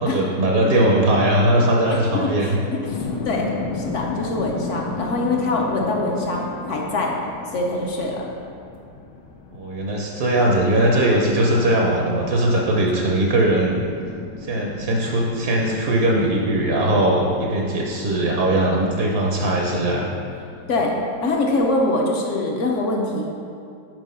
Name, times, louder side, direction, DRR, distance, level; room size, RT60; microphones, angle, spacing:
voice 1, 0.0-2.6 9.5-13.8 14.4-20.1, right 1 dB, 60° right, -1 dB, 0.7 m, -20 dB
voice 2, 1.9-3.5 3.7-7.1 7.5-8.3 20.7-21.0 21.2-23.3, left 2 dB, 55° left, -1 dB, 0.9 m, -24 dB
sound 1, 2.9-21.8, left 4 dB, 80° left, 1.3 m, -35 dB
6.2 x 4.4 x 5.5 m, 2.4 s
omnidirectional pair, 1.9 m